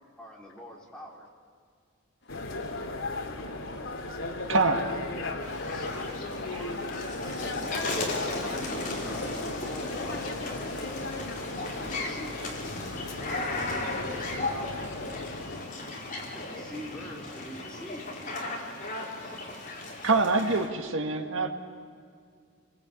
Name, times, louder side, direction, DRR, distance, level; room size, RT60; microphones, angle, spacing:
voice 1, 0.2-1.2 5.7-10.6 11.7-12.7 13.4-14.9 16.3-18.1, equal, 5° left, 3.8 m, -45 dB
voice 2, 2.2-4.3 14.4-14.5, left 2 dB, 55° left, 2.1 m, -54 dB
sound 1, 2.3-15.6, left 2 dB, 75° left, 2.6 m, -36 dB
voice 3, 4.5-4.9 20.0-21.5, right 3 dB, 70° right, 2.0 m, -25 dB
sound 2, 5.4-20.7, left 2 dB, 40° left, 4.3 m, -36 dB
28.5 x 22.0 x 8.6 m
head